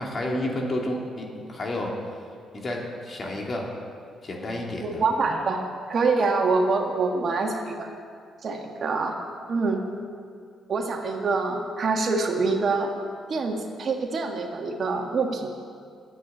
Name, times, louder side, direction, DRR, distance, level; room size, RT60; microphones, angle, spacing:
voice 1, 0.0-1.9 2.5-3.7 4.2-5.0, left 1 dB, 40° left, 0 dB, 2.4 m, -30 dB
voice 2, 4.8-7.9 8.4-9.1 9.5-9.8 10.7-12.9 13.3-15.5, right 3 dB, 50° right, 2 dB, 1.6 m, -25 dB
11.0 x 8.3 x 8.8 m, 2.2 s
cardioid pair, 90°, 0 cm